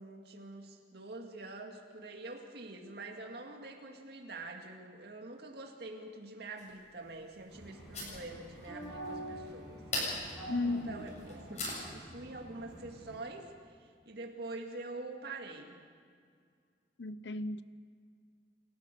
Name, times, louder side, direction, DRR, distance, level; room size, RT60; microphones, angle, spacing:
voice 1, 0.0-9.8 10.6-15.8, right 2 dB, 60° right, 2.2 m, -46 dB
sound 1, 6.6-12.1, left 2 dB, 40° left, 7.4 m, -42 dB
sound 2, 7.5-13.2, right 1 dB, 5° right, 7.3 m, -46 dB
voice 2, 10.5-11.1 17.0-17.6, left 3 dB, 70° left, 0.7 m, -35 dB
29.0 x 14.0 x 6.8 m
head